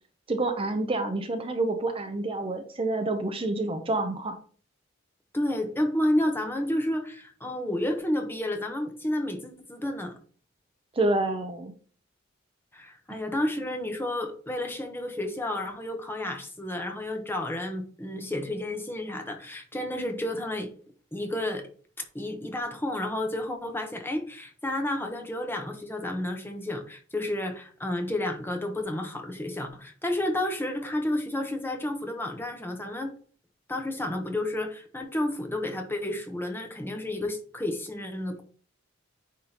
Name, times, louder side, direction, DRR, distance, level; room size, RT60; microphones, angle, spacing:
voice 1, 0.3-4.4 10.9-11.7, right 2 dB, 30° right, 6 dB, 0.6 m, -28 dB
voice 2, 5.3-10.1 12.7-20.7 21.1-21.7 22.1-33.1 33.7-38.4, left 1 dB, 10° left, 4 dB, 0.9 m, -31 dB
9.3 x 3.7 x 2.9 m, 0.43 s
head